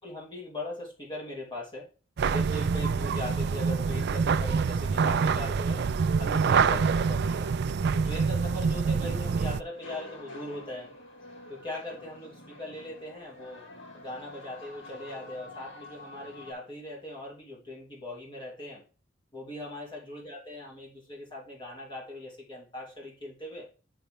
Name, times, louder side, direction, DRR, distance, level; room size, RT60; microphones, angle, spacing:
voice 1, 0.0-1.9 2.2-7.5 7.9-10.9 11.5-13.7 13.9-18.8 19.3-23.7, left 1 dB, 25° left, -3 dB, 2.7 m, -40 dB
sound 1, 2.2-9.6, right 5 dB, 55° right, 0.4 m, -26 dB
sound 2, 9.7-16.5, left 2 dB, 70° left, 2.7 m, -47 dB
10.0 x 4.0 x 3.3 m, 0.35 s
head